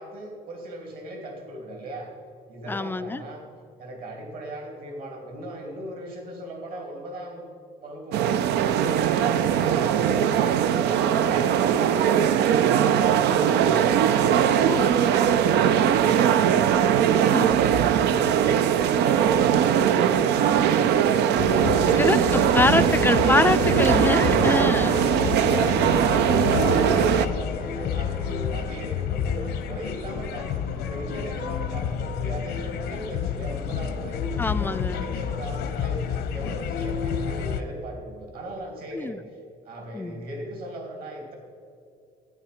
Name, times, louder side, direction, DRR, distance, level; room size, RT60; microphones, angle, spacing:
voice 1, 0.0-2.1 2.5-3.4 3.8-13.9 24.4-26.4 26.7-39.4 39.6-41.3, right 1 dB, 60° right, 1 dB, 2.9 m, -38 dB
voice 2, 2.7-3.2 14.6-14.9 17.3-17.5 22.0-25.0 34.4-35.0 38.9-39.2 39.9-40.2, left 3 dB, 10° left, 12 dB, 0.4 m, -24 dB
sound 1, 8.1-27.3, right 9 dB, 80° right, 0.5 m, -20 dB
sound 2, 21.4-37.6, left 8 dB, 80° left, 0.9 m, -29 dB
12.0 x 8.9 x 5.0 m, 2.5 s
cardioid pair, 110°, 17 cm